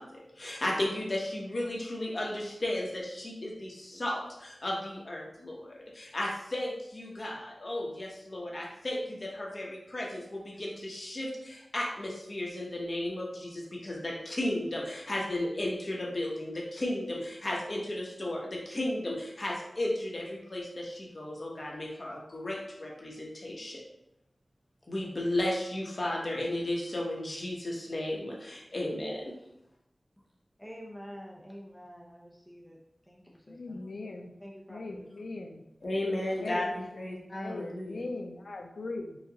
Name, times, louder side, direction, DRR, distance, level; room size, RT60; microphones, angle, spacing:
voice 1, 0.0-23.8 24.9-29.3 35.8-38.0, left 1 dB, 45° left, -2 dB, 1.2 m, -34 dB
voice 2, 30.6-33.9 34.4-35.2, equal, ahead, -4 dB, 0.8 m, -48 dB
voice 3, 33.5-34.3 34.7-35.6 36.4-36.9 37.1-39.2, left 2 dB, 90° left, 3 dB, 0.5 m, -39 dB
4.8 x 2.5 x 4.0 m, 0.84 s
wide cardioid pair, 90°, 0 cm